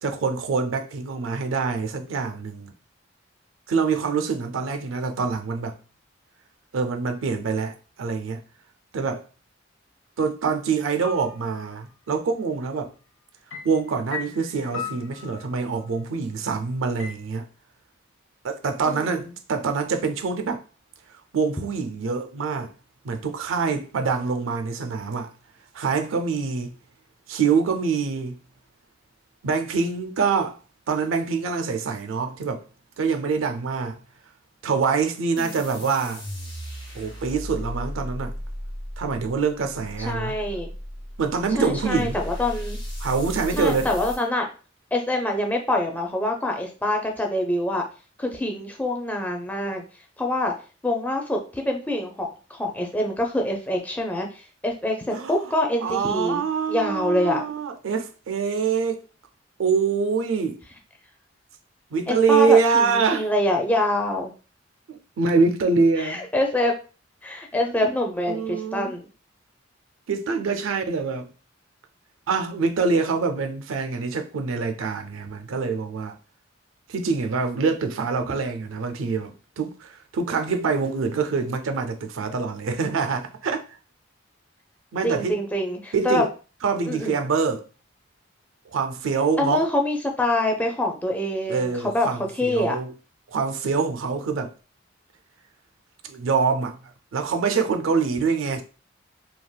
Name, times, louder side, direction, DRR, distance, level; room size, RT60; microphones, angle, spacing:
voice 1, 0.0-2.7 3.7-5.8 6.7-8.4 8.9-9.2 10.2-12.9 13.6-17.5 18.4-20.6 21.3-22.7 23.0-25.3 25.7-26.7 27.3-28.4 29.4-30.6 30.9-32.6 33.0-34.0 34.6-36.2 36.9-38.3 39.0-40.3 41.2-42.2 43.0-43.9 55.1-55.6 55.8-59.0 59.6-60.6 61.9-63.3 64.9-66.3 67.5-67.9 68.3-68.9 70.1-71.3 72.3-76.2 76.9-83.6 84.9-85.4 85.9-86.3 86.6-87.7 88.7-89.7 91.5-92.9 93.3-94.5 96.0-96.8 97.1-98.6, right 5 dB, 90° right, 0.4 m, -25 dB
sound 1, 11.0-11.8 13.5-15.9 17.0-17.1, left 7 dB, 80° left, 0.6 m, -37 dB
sound 2, 35.4-44.2, equal, 25° left, 0.9 m, -35 dB
voice 2, 40.0-40.7 41.6-42.8 43.5-44.5 44.9-47.8 48.2-49.8 50.2-50.5 50.8-56.4 56.7-57.4 62.1-64.3 66.0-66.7 67.2-69.1 85.0-86.2 86.9-87.2 89.4-92.1 92.3-92.8, left 1 dB, 10° left, 0.4 m, -25 dB
3.4 x 2.3 x 2.2 m
head